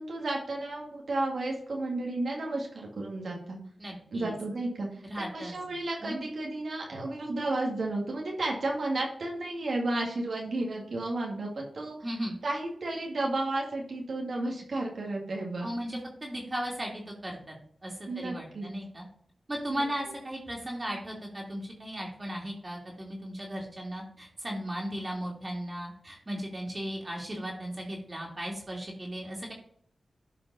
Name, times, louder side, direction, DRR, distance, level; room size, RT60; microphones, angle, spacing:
voice 1, 0.0-3.6 4.1-12.0 12.4-15.7 18.1-18.7 19.7-19.8, right 2 dB, 75° right, -1 dB, 2.1 m, -32 dB
voice 2, 3.8-4.3 5.0-5.5 6.0-6.2 12.0-12.4 15.6-17.5 17.8-19.0 19.5-29.5, equal, 35° right, -2 dB, 2.9 m, -36 dB
11.5 x 5.2 x 4.1 m, 0.65 s
cardioid pair, 45°, 0 cm